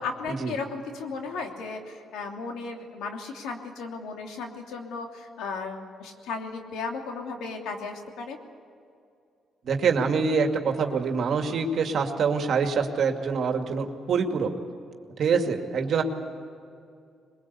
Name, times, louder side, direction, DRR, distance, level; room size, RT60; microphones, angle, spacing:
voice 1, 0.0-8.4, left 4 dB, 85° left, 2 dB, 3.0 m, -35 dB
voice 2, 9.6-14.5 15.2-16.0, right 5 dB, 60° right, 4 dB, 2.3 m, -25 dB
22.5 x 21.5 x 8.4 m, 2.4 s
cardioid pair, 90°, 0 cm